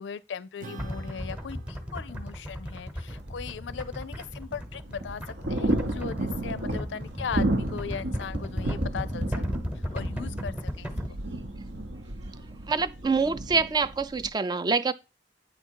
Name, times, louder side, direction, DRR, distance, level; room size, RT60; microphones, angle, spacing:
voice 1, 0.0-9.4 9.7-11.2, left 6 dB, 80° left, 0.4 m, -38 dB
Acoustic guitar / Strum, 0.6-5.4, right 3 dB, 45° right, 0.7 m, -50 dB
sound 1, 0.8-11.1, equal, 5° right, 1.0 m, -35 dB
sound 2, 3.1-14.3, right 1 dB, 70° right, 0.9 m, -33 dB
voice 2, 12.7-14.9, right 4 dB, 25° right, 0.3 m, -25 dB
8.8 x 3.6 x 4.5 m
head